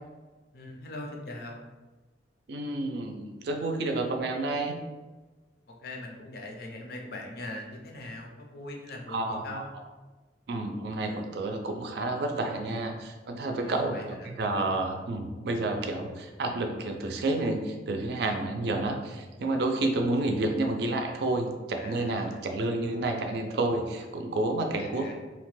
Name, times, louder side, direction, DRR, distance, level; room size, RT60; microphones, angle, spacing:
voice 1, 0.5-1.7 5.8-9.7 12.6-13.0 13.6-14.3 15.6-15.8 18.6-18.9 21.8-22.4 24.8-25.1, left 1 dB, 60° left, 1 dB, 0.5 m, -41 dB
voice 2, 2.5-4.8 9.1-9.6 10.5-25.1, right 2 dB, 65° right, 4 dB, 0.4 m, -30 dB
2.9 x 2.1 x 3.1 m, 1.2 s
head